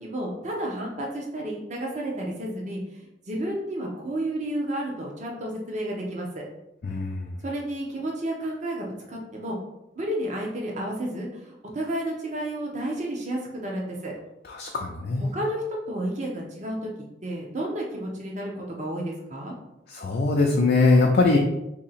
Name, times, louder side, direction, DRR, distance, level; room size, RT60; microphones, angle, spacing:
voice 1, 0.0-2.8 3.3-6.5 7.4-9.6 10.0-14.1 15.2-16.9 17.2-19.6, right 1 dB, 40° right, -1 dB, 0.8 m, -31 dB
voice 2, 6.8-7.3 14.5-15.3 19.9-21.4, left 3 dB, 55° left, 0 dB, 0.4 m, -21 dB
2.8 x 2.8 x 4.1 m, 0.89 s
head